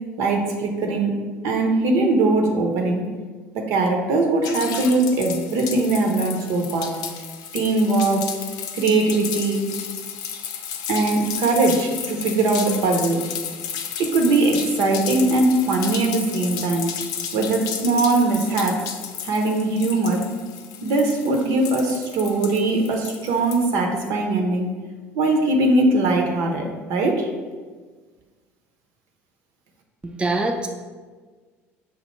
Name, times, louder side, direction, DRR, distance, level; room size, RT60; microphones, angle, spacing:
voice 1, 0.2-1.1 1.4-3.1 3.5-6.9 7.5-8.2 8.7-9.6 10.9-13.2 14.0-16.9 17.3-18.8 19.2-20.2 20.8-24.7 25.1-27.3, right 2 dB, 70° right, 2 dB, 0.7 m, -21 dB
sound 1, 4.4-23.7, left 8 dB, 65° left, 0.4 m, -33 dB
voice 2, 30.0-30.7, right 2 dB, 15° right, 4 dB, 0.4 m, -24 dB
5.7 x 2.4 x 3.0 m, 1.4 s
hypercardioid pair, 70°, 7 cm